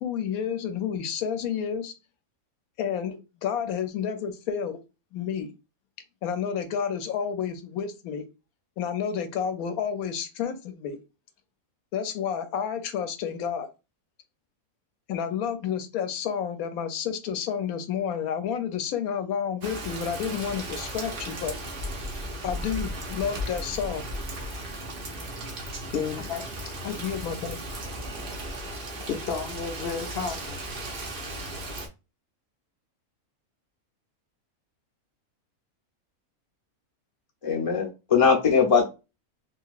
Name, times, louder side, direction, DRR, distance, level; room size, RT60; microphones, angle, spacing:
voice 1, 0.0-1.9 2.8-4.8 5.1-5.5 6.2-8.2 8.8-11.0 11.9-13.7 15.1-21.5 22.4-24.0 26.8-27.6, left 7 dB, 80° left, 1.0 m, -30 dB
Rain, 19.6-31.9, right 1 dB, 45° right, 0.8 m, -36 dB
voice 2, 25.8-26.7 28.2-30.6, left 6 dB, 60° left, 0.6 m, -33 dB
voice 3, 37.4-38.9, left 6 dB, 30° left, 0.7 m, -21 dB
3.3 x 2.9 x 2.3 m
omnidirectional pair, 1.5 m